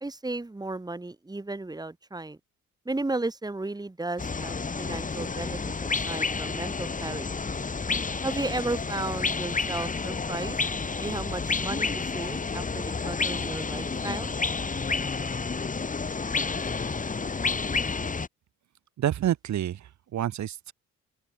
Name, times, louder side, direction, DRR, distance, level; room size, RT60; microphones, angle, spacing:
voice 1, 0.0-2.4 2.8-7.3 8.2-10.6 11.0-14.3, right 2 dB, 15° right, 2.7 m, -34 dB
sound 1, 4.2-18.3, left 4 dB, 25° left, 2.1 m, -30 dB
voice 2, 19.0-20.7, right 11 dB, 70° right, 2.8 m, -28 dB
open air
cardioid pair, 90°, 30 cm